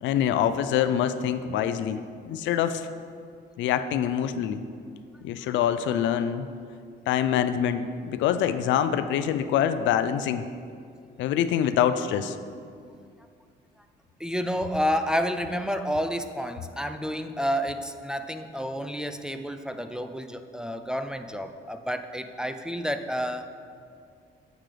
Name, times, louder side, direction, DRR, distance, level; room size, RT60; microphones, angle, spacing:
voice 1, 0.0-2.0 2.3-2.9 3.6-4.6 5.2-6.5 7.1-10.5 11.2-12.4, left 9 dB, 85° left, 10 dB, 0.5 m, -25 dB
voice 2, 14.2-23.5, equal, 5° right, 7 dB, 0.3 m, -30 dB
9.8 x 8.2 x 3.3 m, 2.3 s
cardioid pair, 125°, 19 cm